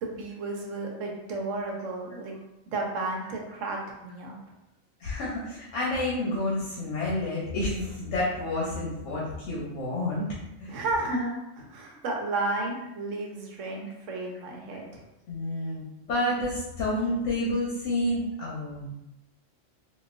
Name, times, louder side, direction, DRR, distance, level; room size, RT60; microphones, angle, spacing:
voice 1, 0.0-2.3 2.7-4.3 10.7-15.0, right 2 dB, 80° right, 0 dB, 1.1 m, -32 dB
voice 2, 5.0-10.3 10.6-10.7 15.3-15.8 16.1-18.9, left 1 dB, 75° left, -6 dB, 1.1 m, -29 dB
3.8 x 2.5 x 2.5 m, 0.90 s
omnidirectional pair, 1.3 m